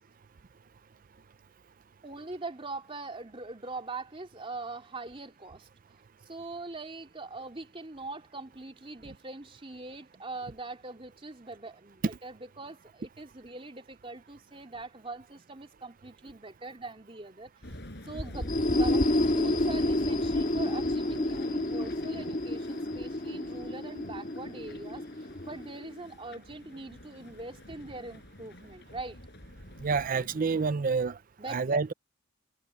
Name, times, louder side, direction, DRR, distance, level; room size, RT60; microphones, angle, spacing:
voice 1, 2.0-5.7 6.2-17.5 18.0-29.2 31.4-31.8, right 3 dB, 25° right, 3.1 m, -42 dB
sound 1, 17.6-30.7, left 1 dB, 55° left, 5.5 m, -44 dB
sound 2, 18.3-26.0, left 1 dB, 40° left, 2.2 m, -29 dB
voice 2, 29.8-31.2 31.5-31.9, right 4 dB, 40° right, 0.5 m, -28 dB
head